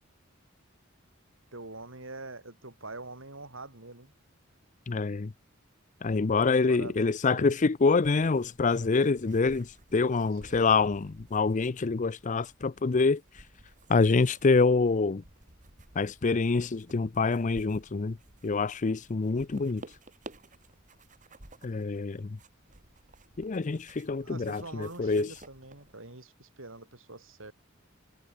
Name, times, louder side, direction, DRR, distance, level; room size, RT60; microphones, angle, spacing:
voice 1, 1.5-4.1 6.7-7.5 9.9-10.1 10.4-10.7 24.2-27.5, right 2 dB, 70° right, 4.9 m, -44 dB
voice 2, 4.9-5.3 6.0-13.2 13.9-15.2 16.0-18.2 18.4-19.8 21.6-22.4 23.4-25.3, left 4 dB, 35° left, 0.5 m, -26 dB
sound 1, 8.0-25.9, right 2 dB, 40° right, 2.6 m, -54 dB
head